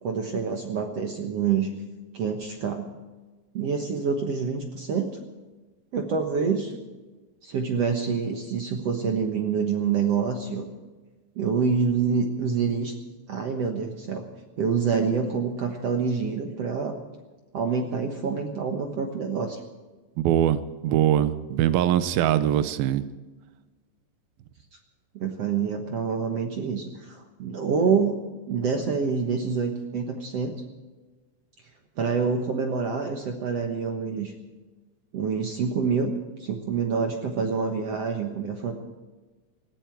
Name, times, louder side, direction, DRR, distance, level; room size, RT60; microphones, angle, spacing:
voice 1, 0.0-1.7 2.1-2.9 3.5-5.1 5.9-6.8 7.4-10.7 11.4-12.9 13.3-14.3 14.6-17.0 17.5-19.6 25.1-28.2 28.5-30.5 32.0-34.3 35.1-36.1 36.4-38.7, right 5 dB, 60° right, 4 dB, 1.9 m, -26 dB
voice 2, 20.2-23.0, right 11 dB, 90° right, 13 dB, 2.7 m, -22 dB
20.5 x 15.5 x 4.6 m, 1.3 s
omnidirectional pair, 4.1 m